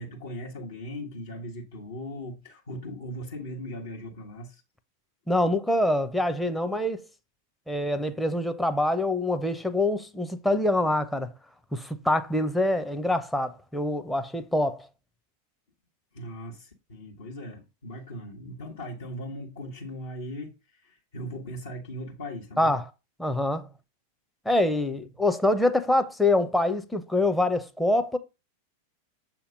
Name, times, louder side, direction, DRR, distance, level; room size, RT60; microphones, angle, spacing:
voice 1, 0.0-4.6 16.1-20.5 20.8-22.8, equal, 65° left, 1.1 m, -38 dB
voice 2, 5.3-7.1 7.7-11.3 11.7-14.9 22.6-22.8 23.2-23.7 24.5-28.2, left 1 dB, 5° left, 0.6 m, -25 dB
7.0 x 2.9 x 5.0 m
figure-of-eight pair, 90°, 0 cm